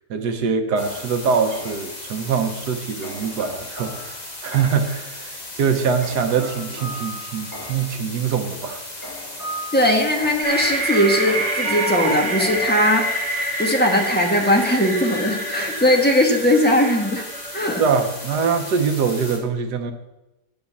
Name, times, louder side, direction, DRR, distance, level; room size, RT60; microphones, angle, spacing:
voice 1, 0.1-4.1 4.4-5.3 5.6-8.8 17.8-19.9, right 6 dB, 80° right, 6 dB, 1.5 m, -23 dB
sound 1, 0.8-19.4, left 1 dB, 25° left, 1.7 m, -37 dB
sound 2, 0.8-2.0 3.0-5.0 6.0-8.0 9.0-13.3, right 2 dB, 10° right, 3.8 m, -35 dB
voice 2, 9.7-13.1 13.6-17.2 17.5-17.8, left 1 dB, 5° left, 0 dB, 1.3 m, -19 dB
sound 3, 10.4-18.7, right 1 dB, 40° right, 2.3 m, -27 dB
9.6 x 5.3 x 7.1 m, 0.97 s
omnidirectional pair, 1.7 m